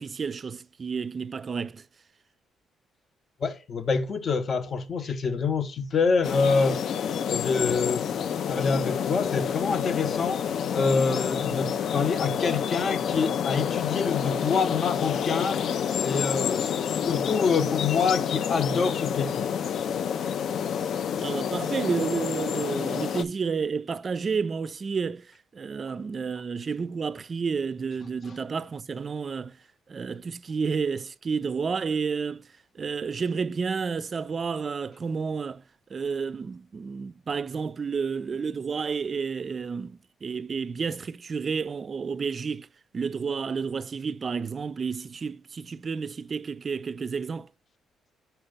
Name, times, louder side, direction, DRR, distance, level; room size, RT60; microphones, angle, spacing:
voice 1, 0.0-1.9 21.2-29.6 29.9-32.5 32.7-35.6 35.9-42.7 42.9-47.5, right 5 dB, 40° right, 0.4 m, -31 dB
voice 2, 3.4-8.2 8.5-15.6 16.0-16.7 17.1-19.4 19.7-19.8, left 5 dB, 45° left, 0.8 m, -26 dB
sound 1, 6.2-23.2, left 8 dB, 65° left, 0.4 m, -28 dB
4.6 x 4.4 x 5.0 m
cardioid pair, 90°, 0 cm